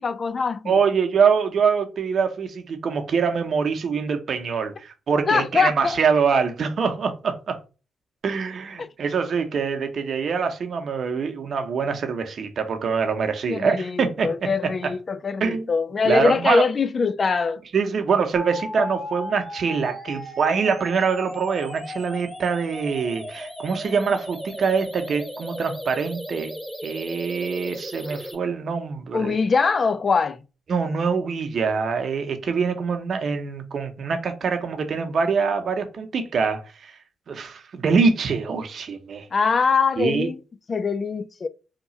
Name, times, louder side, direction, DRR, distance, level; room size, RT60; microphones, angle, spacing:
voice 1, 0.0-0.6 5.3-6.0 8.8-8.9 13.5-17.6 29.1-30.4 39.3-40.4 40.7-41.5, left 5 dB, 45° left, 0.4 m, -22 dB
voice 2, 0.7-7.6 8.2-14.9 15.4-15.7 16.1-16.6 17.7-26.5 26.8-29.4 30.7-37.0 37.3-39.3 40.0-40.3, right 5 dB, 65° right, 0.7 m, -24 dB
sound 1, 18.3-28.3, left 1 dB, 5° left, 1.0 m, -36 dB
2.9 x 2.3 x 4.0 m
supercardioid pair, 60°, 0 cm